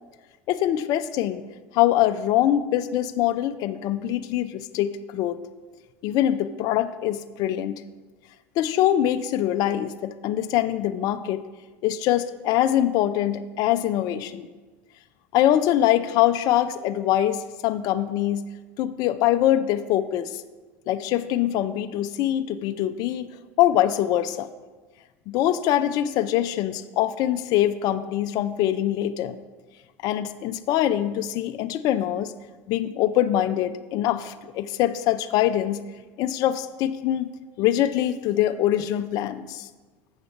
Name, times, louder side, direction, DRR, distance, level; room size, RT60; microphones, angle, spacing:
voice 1, 0.5-1.4 1.7-5.4 6.0-7.8 8.6-11.4 11.8-14.5 15.3-20.4 20.9-23.3 23.6-24.5 25.3-29.4 30.0-32.3 32.7-35.8 36.2-37.3 37.6-39.7, left 12 dB, 55° left, 11 dB, 0.4 m, -23 dB
7.9 x 6.4 x 4.4 m, 1.3 s
hypercardioid pair, 85°, 8 cm